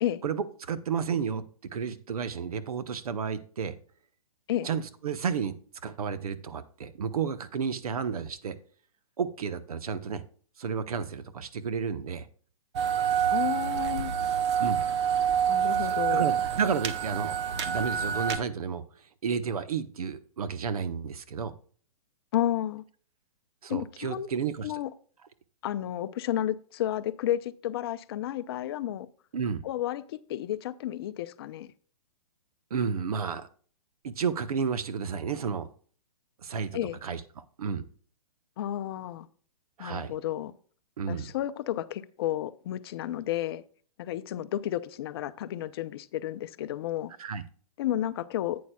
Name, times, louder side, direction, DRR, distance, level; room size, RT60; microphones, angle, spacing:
voice 1, 0.2-3.7 4.6-5.5 5.8-8.6 9.2-10.2 10.6-12.3 14.6-14.8 16.1-18.8 19.2-21.5 23.6-24.7 29.3-29.6 32.7-33.5 34.0-35.7 36.4-37.8 39.8-40.1 41.0-41.3 47.2-47.4, right 6 dB, 75° right, 1.0 m, -32 dB
sound 1, 12.8-18.4, right 8 dB, 50° right, 1.0 m, -27 dB
voice 2, 13.3-14.1 15.5-16.3 22.3-22.8 23.7-24.3 24.6-24.9 25.6-29.1 29.6-31.7 36.7-37.0 38.6-39.3 39.8-40.5 41.1-43.6 44.0-47.1 47.8-48.6, left 12 dB, 40° left, 0.6 m, -32 dB
11.0 x 8.5 x 2.3 m
hypercardioid pair, 145°, 19 cm